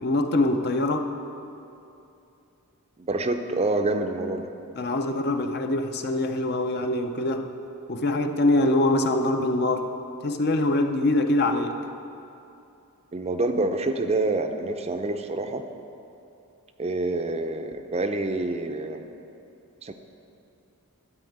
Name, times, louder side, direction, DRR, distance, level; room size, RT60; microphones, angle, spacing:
voice 1, 0.0-1.1 4.8-7.5 7.9-9.9 10.2-11.8, left 2 dB, 45° left, 6 dB, 0.6 m, -24 dB
voice 2, 3.0-4.5 13.1-15.6 16.8-19.1 19.8-19.9, right 2 dB, 30° right, 7 dB, 0.5 m, -27 dB
12.5 x 4.7 x 7.9 m, 2.8 s
head